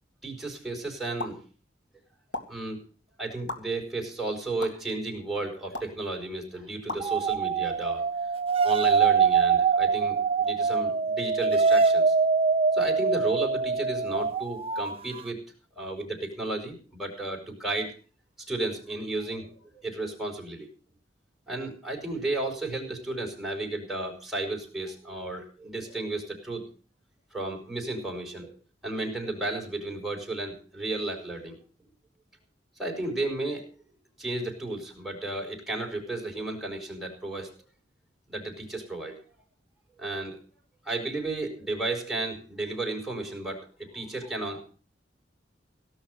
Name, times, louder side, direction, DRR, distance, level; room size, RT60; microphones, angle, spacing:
voice 1, 0.2-1.4 2.5-2.8 3.2-8.0 8.6-12.1 12.7-15.4 15.8-17.9 18.5-20.7 21.5-26.6 27.3-28.5 28.8-31.6 32.8-33.7 34.2-37.5 38.3-39.2 40.0-40.4 40.8-44.6, right 2 dB, ahead, -1 dB, 4.8 m, -33 dB
sound 1, 1.2-1.4 2.3-2.4 3.5-3.6 4.6-4.7 5.7-5.9 6.9-7.0, left 2 dB, 90° left, 2.4 m, -34 dB
sound 2, 7.0-15.2, right 5 dB, 35° right, 0.7 m, -24 dB
17.5 x 6.5 x 7.9 m, 0.39 s
head